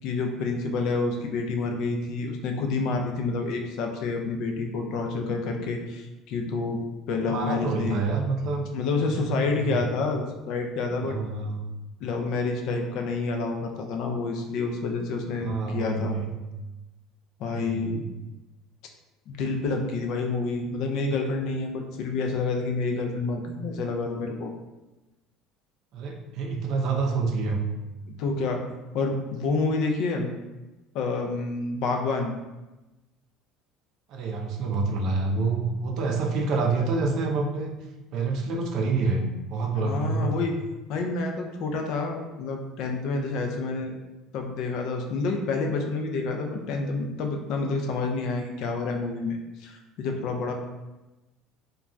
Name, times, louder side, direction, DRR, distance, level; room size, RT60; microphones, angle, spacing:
voice 1, 0.0-6.8 7.1-8.0 8.7-11.1 12.0-16.2 17.4-18.0 19.3-24.5 28.1-28.6 28.9-30.3 30.9-32.3 39.7-40.5 40.9-43.9 44.3-50.5, left 3 dB, 55° left, 3 dB, 0.4 m, -28 dB
voice 2, 7.2-8.7 9.0-9.8 11.0-11.6 15.4-16.3 17.5-18.0 25.9-27.6 34.1-37.7 38.1-39.2 39.5-40.4, right 4 dB, 50° right, 2 dB, 0.4 m, -27 dB
3.1 x 2.2 x 2.4 m, 1.1 s
cardioid pair, 155°, 0 cm